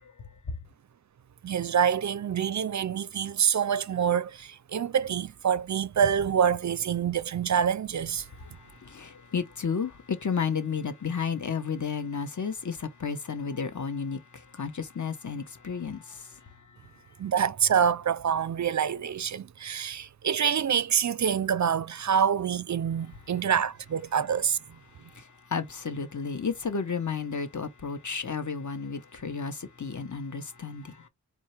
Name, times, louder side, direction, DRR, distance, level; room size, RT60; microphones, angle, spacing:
voice 1, 1.4-8.3 17.2-24.6, right 8 dB, 50° right, 0.4 m, -26 dB
voice 2, 8.8-14.2 14.5-16.2 25.2-25.3 25.5-31.0, left 6 dB, 50° left, 1.0 m, -32 dB
4.5 x 2.1 x 4.2 m
cardioid pair, 55°, 38 cm